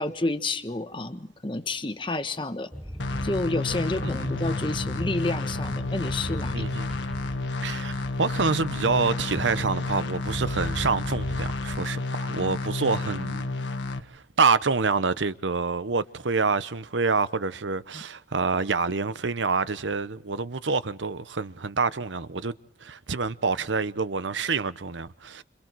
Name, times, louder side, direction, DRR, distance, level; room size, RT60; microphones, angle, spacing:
voice 1, 0.0-2.7 3.2-6.7 10.4-10.5 17.9-18.0, left 2 dB, 25° left, 1.3 m, -30 dB
sound 1, 2.7-11.8, equal, ahead, 0.9 m, -37 dB
sound 2, 3.0-14.0, left 3 dB, 90° left, 1.6 m, -31 dB
voice 2, 6.5-6.9 7.6-13.5 14.1-22.5 22.8-25.4, right 4 dB, 90° right, 0.9 m, -27 dB
30.0 x 27.0 x 4.7 m
head